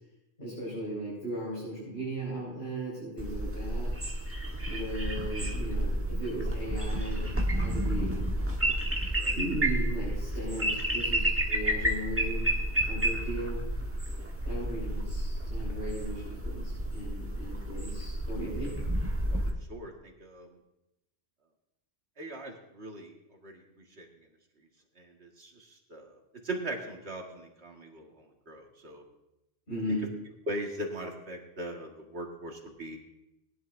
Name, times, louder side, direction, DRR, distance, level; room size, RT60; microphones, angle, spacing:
voice 1, 0.4-3.9 4.7-8.2 9.3-12.5 12.9-13.6 14.4-18.8 29.7-30.1, right 1 dB, 75° left, -8 dB, 5.5 m, -37 dB
sound 1, 3.2-19.5, right 1 dB, 15° right, 1.2 m, -31 dB
voice 2, 19.7-20.5 22.2-23.1 23.4-24.1 25.0-26.2 26.4-29.0 29.9-30.0 30.5-33.0, right 1 dB, 80° right, 1 dB, 2.1 m, -40 dB
20.0 x 11.0 x 2.7 m, 0.90 s
omnidirectional pair, 1.1 m